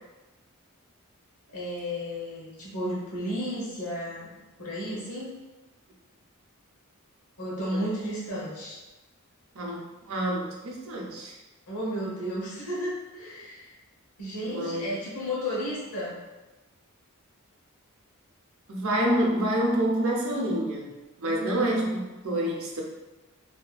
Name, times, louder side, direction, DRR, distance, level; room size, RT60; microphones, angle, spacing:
voice 1, 1.5-4.3 4.6-5.3 7.4-8.8 11.7-13.7 14.2-16.2 21.2-21.8, equal, 85° left, -6 dB, 0.9 m, -33 dB
voice 2, 9.6-11.3 14.5-14.9 18.7-20.9 21.2-22.8, right 1 dB, 65° right, -1 dB, 0.5 m, -27 dB
2.7 x 2.4 x 2.2 m, 1.1 s
head